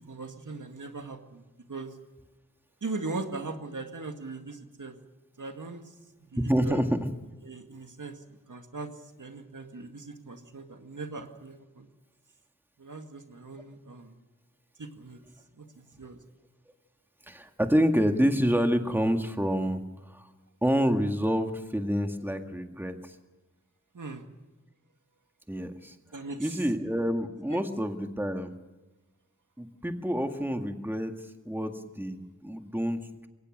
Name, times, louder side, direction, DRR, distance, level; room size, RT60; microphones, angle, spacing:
voice 1, 0.0-1.4 1.7-1.9 2.8-4.9 5.4-5.8 6.4-6.8 7.4-8.2 8.5-8.9 9.2-11.9 12.8-14.2 14.8-15.2 15.6-16.2 23.9-24.2 26.1-26.6 27.5-27.6, right 3 dB, 85° right, 5 dB, 2.0 m, -39 dB
voice 2, 6.4-7.1 17.3-20.3 20.6-23.2 25.5-26.0 26.4-28.5 29.6-33.3, equal, 5° right, 5 dB, 1.9 m, -28 dB
22.5 x 18.5 x 6.5 m, 1.2 s
wide cardioid pair, 65°, 30 cm